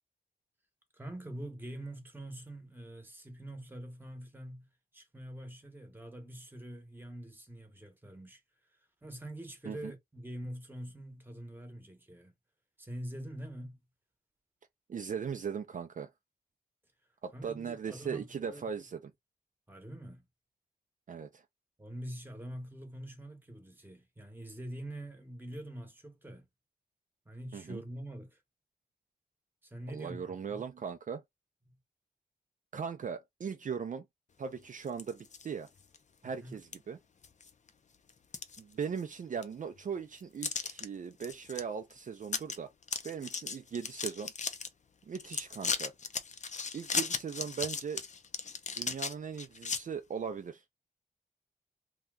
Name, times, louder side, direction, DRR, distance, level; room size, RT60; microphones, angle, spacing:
voice 1, 0.9-8.4 9.0-12.3 12.8-13.8 17.3-18.7 19.7-20.3 21.8-26.5 27.3-28.4 29.6-30.7 31.7-31.8 36.2-36.6, right 1 dB, 15° right, 0.9 m, -45 dB
voice 2, 14.9-16.1 17.2-19.1 21.1-21.4 27.5-27.8 29.9-31.2 32.7-34.0 34.4-35.7 36.2-37.0 38.6-42.7 43.0-44.3 45.1-45.9 46.7-48.0 48.8-50.6, right 6 dB, 55° right, 0.4 m, -39 dB
sound 1, 34.9-35.5 35.9-36.0 36.7-36.8 37.2-37.7 38.1-39.1 39.4-39.5 40.4-40.8 41.2-41.6 41.9-42.0 42.2-42.6 42.8-44.7 45.1-49.8, left 5 dB, 50° left, 0.5 m, -36 dB
2.8 x 2.2 x 3.4 m
wide cardioid pair, 105°, 16 cm